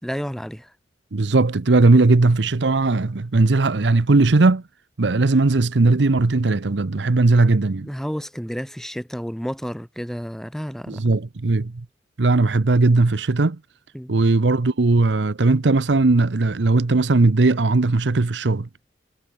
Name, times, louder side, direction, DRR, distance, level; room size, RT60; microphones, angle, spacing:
voice 1, 0.0-0.7 7.8-11.0 13.9-14.2, equal, 5° left, 4.8 m, -31 dB
voice 2, 1.1-4.6 5.0-7.9 10.9-11.7 12.2-13.6 14.1-18.7, right 3 dB, 80° right, 0.8 m, -18 dB
head